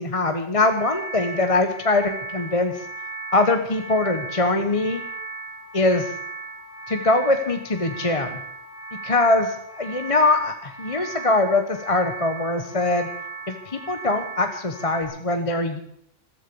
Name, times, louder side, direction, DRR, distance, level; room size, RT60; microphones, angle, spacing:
voice 1, 0.0-2.8 3.3-5.0 5.7-6.1 6.9-8.3 9.0-13.1 13.5-15.8, left 2 dB, 30° left, 7 dB, 1.1 m, -22 dB
sound 1, 0.6-15.0, right 4 dB, 5° right, 2.8 m, -37 dB
14.0 x 13.0 x 6.9 m, 0.70 s
omnidirectional pair, 1.3 m